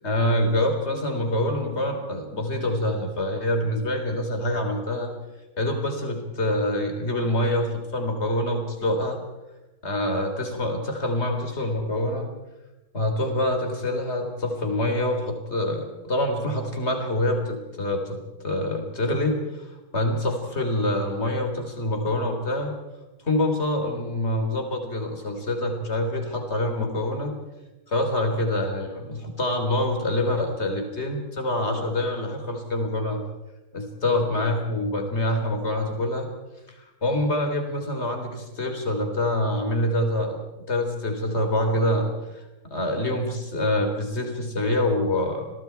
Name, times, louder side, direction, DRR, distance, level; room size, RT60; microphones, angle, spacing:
voice 1, 0.0-5.1 5.6-9.2 9.8-12.3 12.9-19.7 19.9-22.7 23.2-27.3 27.9-33.2 33.7-36.3 36.7-40.4 40.7-42.4 42.7-45.5, left 1 dB, 30° left, 5 dB, 3.9 m, -26 dB
30.0 x 23.0 x 4.6 m, 1.1 s
omnidirectional pair, 2.4 m